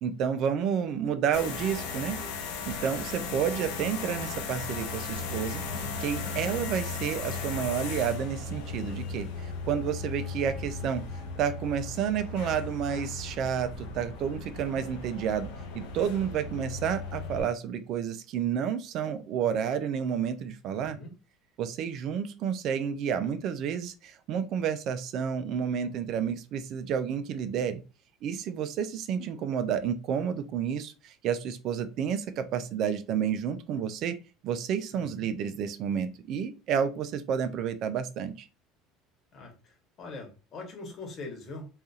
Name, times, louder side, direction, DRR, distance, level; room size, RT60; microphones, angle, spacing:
voice 1, 0.0-2.2 2.7-5.6 6.0-11.0 11.4-15.5 15.7-21.0 21.6-27.8 28.2-34.2 34.4-38.5, right 8 dB, 55° right, 10 dB, 0.3 m, -30 dB
sound 1, 1.3-17.4, left 4 dB, 75° left, 0.6 m, -36 dB
voice 2, 20.7-21.1 34.9-35.3 39.3-41.7, left 3 dB, 45° left, 1 dB, 1.1 m, -43 dB
2.7 x 2.4 x 2.3 m, 0.31 s
hypercardioid pair, 75°, 0 cm